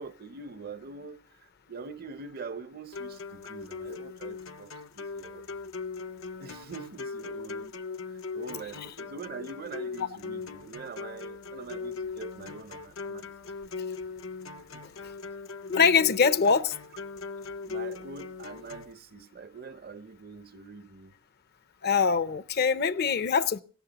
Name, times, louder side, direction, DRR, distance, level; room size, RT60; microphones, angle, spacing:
voice 1, 0.0-5.6 6.4-7.8 8.0-13.3 14.7-14.8 17.6-21.1, right 4 dB, 50° right, 0.6 m, -44 dB
sound 1, 2.9-18.9, left 4 dB, 90° left, 0.7 m, -39 dB
voice 2, 15.7-16.7 21.8-23.6, left 6 dB, 55° left, 0.6 m, -23 dB
22.0 x 17.0 x 2.9 m
head